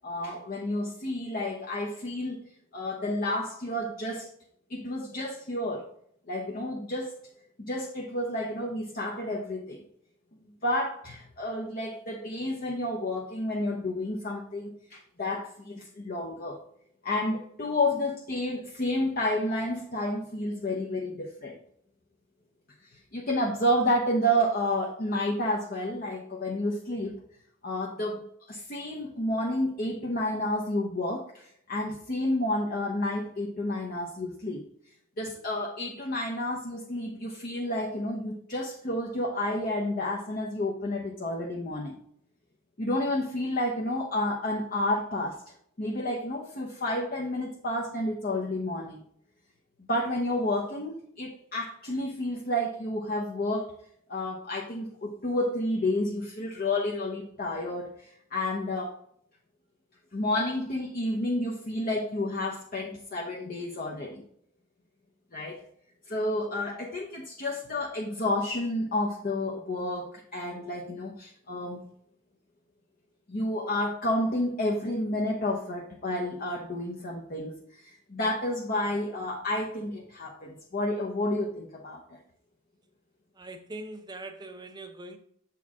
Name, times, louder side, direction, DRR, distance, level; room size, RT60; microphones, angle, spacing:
voice 1, 0.0-2.4 2.7-4.3 4.7-5.9 6.3-7.2 7.7-9.8 10.6-16.6 17.0-21.6 23.1-27.1 27.6-34.6 35.2-42.0 42.8-45.4 45.8-49.0 49.9-53.7 54.1-59.0 60.1-64.2 65.3-65.6 66.1-71.8 73.3-82.2, left 1 dB, 45° left, 0.8 m, -30 dB
voice 2, 83.3-85.2, right 2 dB, 20° right, 0.6 m, -42 dB
7.3 x 4.5 x 3.6 m
head